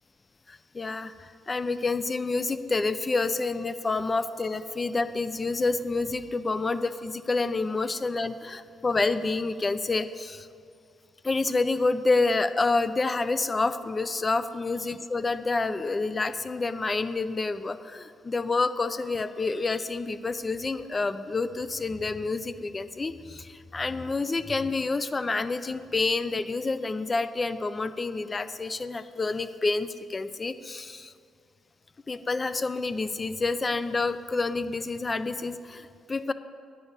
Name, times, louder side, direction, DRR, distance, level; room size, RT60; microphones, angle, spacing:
voice 1, 0.5-10.5 11.2-31.1 32.1-36.3, left 3 dB, 30° left, 13 dB, 0.4 m, -28 dB
9.5 x 5.3 x 8.0 m, 2.3 s
cardioid pair, 85°, 0 cm